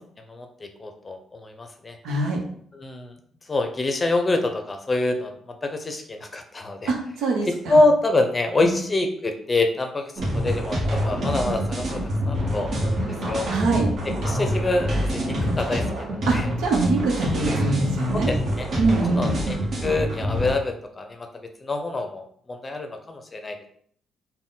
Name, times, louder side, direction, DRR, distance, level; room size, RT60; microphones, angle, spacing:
voice 1, 0.3-2.0 2.7-3.1 3.5-6.9 7.7-13.0 13.3-13.5 14.2-16.5 18.1-18.7 19.1-21.3 21.6-23.6, left 2 dB, 25° left, 5 dB, 0.6 m, -26 dB
voice 2, 2.0-2.4 6.9-7.8 8.6-8.7 13.5-13.9 16.3-18.3 18.8-19.4, right 3 dB, 80° right, 1 dB, 0.9 m, -24 dB
sound 1, 10.2-20.5, equal, 60° right, 1.2 m, -26 dB
3.8 x 2.2 x 3.9 m, 0.62 s
cardioid pair, 90°, 0 cm